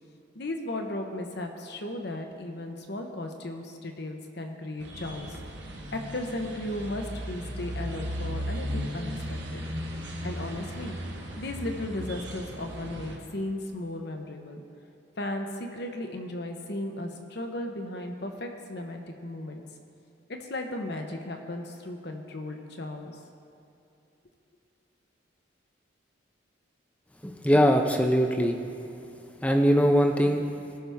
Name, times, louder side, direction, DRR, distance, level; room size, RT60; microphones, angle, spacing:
voice 1, 0.3-5.4 5.9-9.7 10.2-11.0 11.4-14.6 15.2-19.6 20.3-23.2, left 1 dB, 55° left, 4 dB, 0.9 m, -35 dB
sound 1, 4.8-13.2, equal, 60° right, 1.3 m, -36 dB
voice 2, 27.2-28.6 29.4-30.5, equal, 5° left, 4 dB, 0.5 m, -21 dB
17.5 x 6.1 x 3.5 m, 2.7 s
head